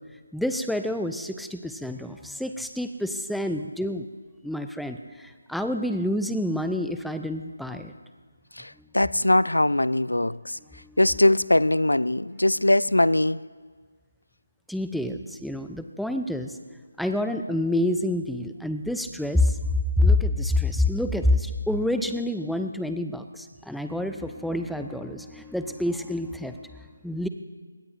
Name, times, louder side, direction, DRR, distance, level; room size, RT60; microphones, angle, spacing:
voice 1, 0.3-4.1 4.4-7.9 10.8-11.0 14.7-16.6 17.0-19.6 20.0-27.3, left 1 dB, ahead, 0.5 m, -27 dB
voice 2, 8.6-10.6 11.0-13.4, left 1 dB, 85° left, 0.4 m, -21 dB
22.0 x 18.0 x 2.6 m
figure-of-eight pair, 155°, 0 cm